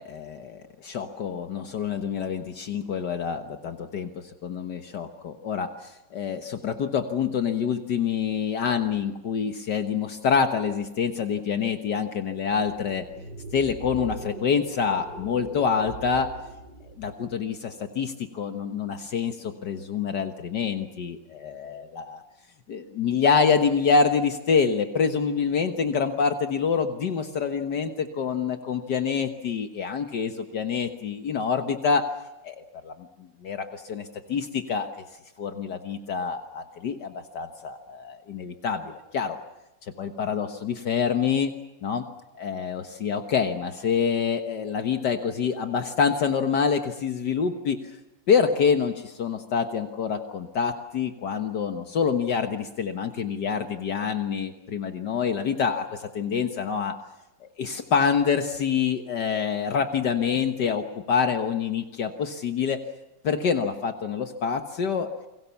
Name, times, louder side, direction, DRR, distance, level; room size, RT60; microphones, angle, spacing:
voice 1, 0.0-13.1 13.5-16.3 17.0-22.2 22.7-32.1 32.4-32.9 33.2-34.9 35.4-39.4 39.8-41.5 41.8-42.1 42.4-47.8 48.3-56.9 57.4-62.8 63.2-65.1, left 6 dB, 65° left, 6 dB, 1.9 m, -26 dB
sound 1, 12.5-17.3, right 2 dB, 65° right, 7.5 m, -41 dB
30.0 x 22.5 x 7.1 m, 0.96 s
omnidirectional pair, 2.0 m